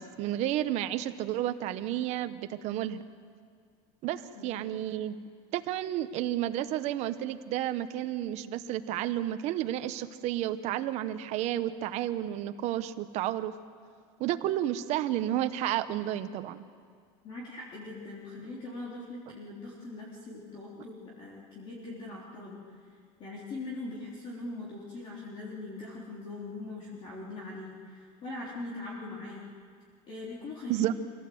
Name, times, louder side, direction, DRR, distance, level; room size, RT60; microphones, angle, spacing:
voice 1, 0.0-3.0 4.0-5.2 5.5-13.5 14.2-16.6 30.7-31.0, right 12 dB, 40° right, 10 dB, 0.9 m, -31 dB
voice 2, 17.2-22.6 23.2-29.4 30.1-30.7, left 2 dB, 30° left, -5 dB, 3.5 m, -41 dB
26.0 x 17.0 x 7.8 m, 2.1 s
cardioid pair, 170°, 17 cm